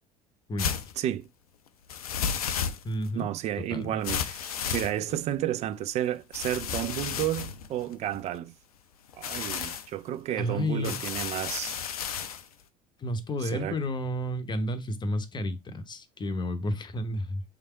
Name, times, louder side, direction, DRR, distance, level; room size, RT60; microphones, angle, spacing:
sound 1, 0.6-0.9 1.9-3.1 4.0-5.3 6.3-8.4 9.1-9.9 10.8-12.4, left 7 dB, 75° left, 0.5 m, -33 dB
voice 1, 1.0-1.3 3.1-8.5 9.1-11.8 13.4-13.8, right 12 dB, 35° right, 0.4 m, -31 dB
voice 2, 2.8-3.3 3.6-3.9 10.4-11.0 13.0-17.4, left 1 dB, 25° left, 0.8 m, -31 dB
3.5 x 3.4 x 4.3 m
figure-of-eight pair, 65°, 19 cm